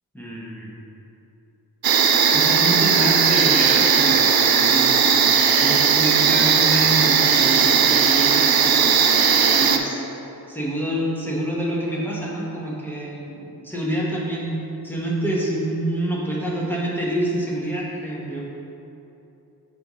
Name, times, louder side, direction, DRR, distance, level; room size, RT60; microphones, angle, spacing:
voice 1, 0.1-0.7 2.3-10.0 10.5-14.5 14.8-18.5, right 1 dB, 5° left, -5 dB, 1.2 m, -27 dB
sound 1, 1.8-9.8, right 7 dB, 70° right, 0.5 m, -17 dB
7.6 x 4.1 x 3.1 m, 2.9 s
wide cardioid pair, 70°, 38 cm